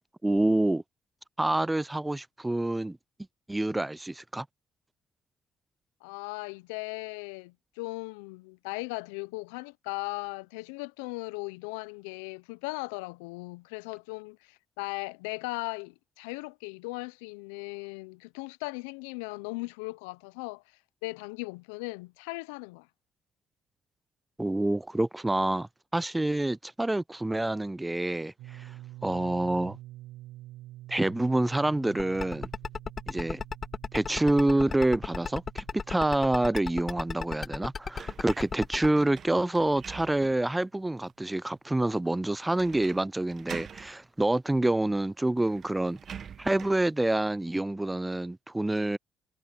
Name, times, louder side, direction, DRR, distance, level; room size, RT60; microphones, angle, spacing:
voice 1, 0.2-0.8 1.4-3.0 3.5-4.5 24.4-28.7 29.0-29.8 30.9-32.5 33.1-33.4 33.9-49.0, right 1 dB, 15° right, 0.3 m, -27 dB
voice 2, 6.0-20.6 21.0-22.9, left 26 dB, 85° left, 0.6 m, -38 dB
sound 1, 28.4-40.1, right 16 dB, 80° right, 0.7 m, -49 dB
sound 2, 32.0-38.9, left 5 dB, 45° left, 1.5 m, -34 dB
sound 3, 38.0-40.5 41.0-41.1 42.5-43.0 43.3-43.9 44.9-45.0 45.4-46.9, right 8 dB, 55° right, 1.4 m, -45 dB
hypercardioid pair, 50°, 0 cm